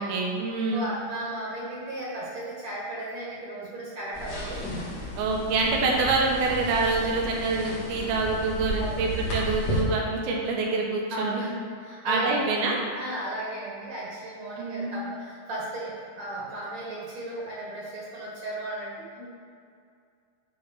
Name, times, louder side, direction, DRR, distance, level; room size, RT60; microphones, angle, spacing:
voice 1, 0.0-0.9 5.2-11.5 12.0-12.8 14.6-15.0, right 3 dB, 90° right, -1 dB, 3.1 m, -26 dB
voice 2, 0.7-4.6 8.7-9.0 11.1-11.5 11.8-12.5 12.7-19.3, right 1 dB, 60° right, -5 dB, 2.3 m, -35 dB
sound 1, 4.1-9.8, equal, 55° left, 3.2 m, -33 dB
11.5 x 4.1 x 5.3 m, 2.3 s
omnidirectional pair, 4.1 m